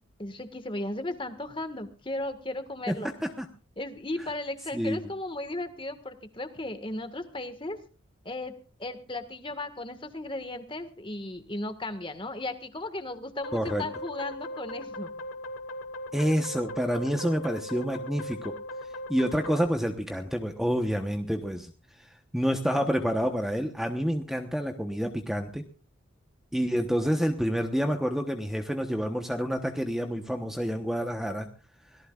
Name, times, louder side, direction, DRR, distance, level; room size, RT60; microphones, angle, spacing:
voice 1, 0.2-3.1 3.8-7.8 8.2-8.5 8.8-15.1, left 2 dB, 25° left, 9 dB, 1.7 m, -36 dB
voice 2, 2.9-3.5 4.7-5.0 13.5-13.8 16.1-18.6 19.1-21.7 22.0-25.6 26.5-31.5, equal, ahead, 5 dB, 1.0 m, -28 dB
sound 1, 13.4-19.7, left 1 dB, 85° left, 2.4 m, -39 dB
25.0 x 18.5 x 2.4 m, 0.36 s
head